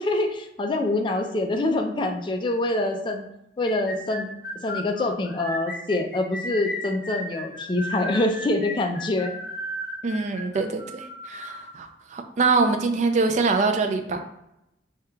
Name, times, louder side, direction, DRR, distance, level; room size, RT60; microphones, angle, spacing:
voice 1, 0.0-3.2 3.6-4.3 4.6-9.3, left 2 dB, 25° left, 4 dB, 0.4 m, -25 dB
sound 1, 3.6-11.7, left 1 dB, 60° left, 0.8 m, -35 dB
voice 2, 10.0-14.2, right 3 dB, 40° right, 5 dB, 0.4 m, -24 dB
4.7 x 2.8 x 2.3 m, 0.84 s
head